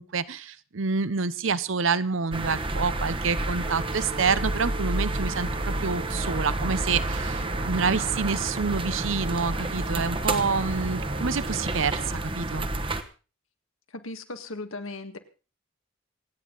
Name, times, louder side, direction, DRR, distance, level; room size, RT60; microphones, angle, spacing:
voice 1, 0.0-12.7, right 5 dB, 70° right, 16 dB, 0.8 m, -28 dB
sound 1, 2.3-13.0, right 2 dB, 25° right, 1.1 m, -30 dB
sound 2, 3.6-12.1, right 3 dB, 55° right, 2.0 m, -40 dB
voice 2, 13.9-15.2, left 2 dB, 80° left, 7 dB, 1.9 m, -37 dB
27.0 x 9.3 x 4.0 m, 0.35 s
head